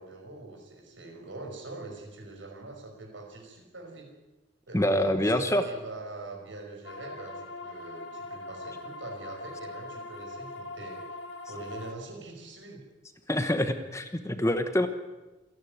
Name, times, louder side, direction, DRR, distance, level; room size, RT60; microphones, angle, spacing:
voice 1, 0.0-4.1 4.7-11.0 11.5-12.8, right 2 dB, 75° right, 1 dB, 5.7 m, -43 dB
voice 2, 4.7-5.6 13.3-14.9, left 1 dB, 15° left, 8 dB, 1.1 m, -26 dB
sound 1, 6.8-11.9, left 2 dB, 65° left, 1.8 m, -41 dB
28.0 x 10.5 x 9.4 m, 1.1 s
head